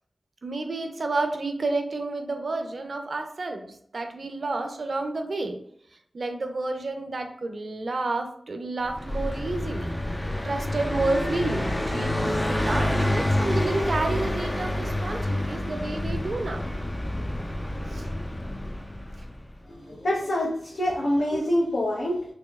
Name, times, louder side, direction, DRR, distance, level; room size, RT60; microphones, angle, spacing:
voice 1, 0.4-5.6 6.1-9.9 10.4-16.7 17.9-18.1 20.9-21.0 21.3-21.4, right 2 dB, 65° right, 5 dB, 0.6 m, -30 dB
Car passing by, 8.9-19.5, left 1 dB, 15° left, 0.4 m, -28 dB
voice 2, 19.7-22.3, left 1 dB, 75° left, -4 dB, 0.8 m, -26 dB
4.2 x 2.9 x 2.3 m, 0.68 s
cardioid pair, 60°, 0 cm